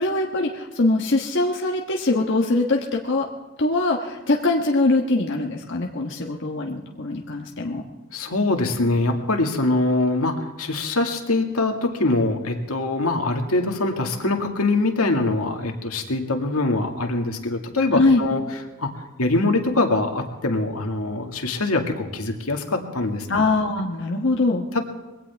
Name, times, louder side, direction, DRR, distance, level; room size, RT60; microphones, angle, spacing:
voice 1, 0.0-3.3 3.6-7.8 17.9-18.2 23.3-24.7, left 2 dB, 60° left, 0 dB, 1.4 m, -22 dB
voice 2, 8.1-18.4 18.8-18.9 19.2-23.3 24.7-24.8, left 2 dB, 90° left, 3 dB, 2.1 m, -23 dB
21.5 x 17.5 x 3.5 m, 1.2 s
head